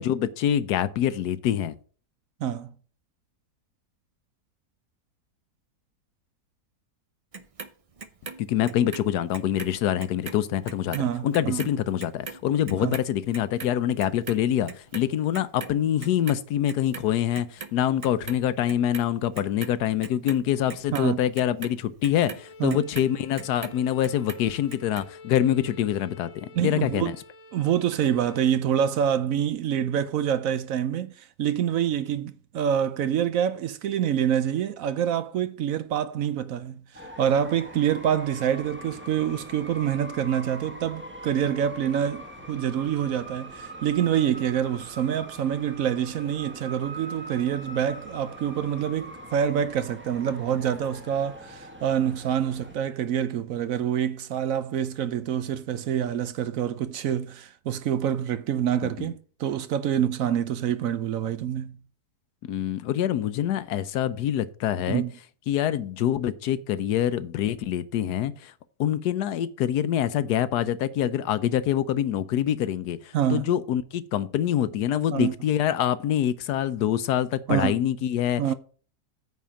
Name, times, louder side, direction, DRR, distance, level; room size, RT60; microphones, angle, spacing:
voice 1, 0.0-1.7 8.4-11.0 11.2-27.1 58.8-59.1 62.5-65.0 65.5-68.5 68.8-78.5, left 11 dB, 85° left, 1.2 m, -25 dB
voice 2, 2.4-2.7 10.9-11.7 12.8-13.0 20.9-21.2 22.6-22.8 26.5-27.2 27.5-36.8 37.2-61.8 64.9-65.1 73.1-73.5 75.1-75.3 77.5-77.8 78.4-78.5, right 9 dB, 65° right, 0.9 m, -26 dB
Clock, 7.3-9.7 10.0-16.4 16.7-17.7 18.0-19.0 19.3-23.8 24.0-25.0 25.4-25.5, right 4 dB, 50° right, 0.4 m, -40 dB
Bowed string instrument, 22.3-28.7, left 2 dB, 60° left, 1.3 m, -48 dB
sound 1, 36.9-52.8, right 1 dB, 10° right, 0.9 m, -42 dB
9.3 x 4.3 x 7.4 m
omnidirectional pair, 1.7 m